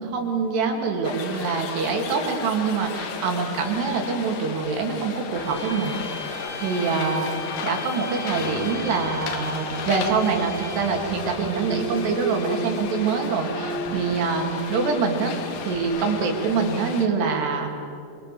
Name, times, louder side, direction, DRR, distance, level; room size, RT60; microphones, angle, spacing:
voice 1, 0.0-6.0 6.2-7.3 7.6-15.3 15.7-17.7, right 4 dB, 75° right, 2 dB, 4.8 m, -25 dB
sound 1, 1.0-17.1, left 6 dB, 60° left, 2.9 m, -35 dB
sound 2, 5.3-11.1, equal, 15° left, 6.0 m, -38 dB
sound 3, 8.3-15.8, right 3 dB, 35° left, 7.4 m, -35 dB
27.0 x 26.0 x 7.0 m, 2.7 s
omnidirectional pair, 4.9 m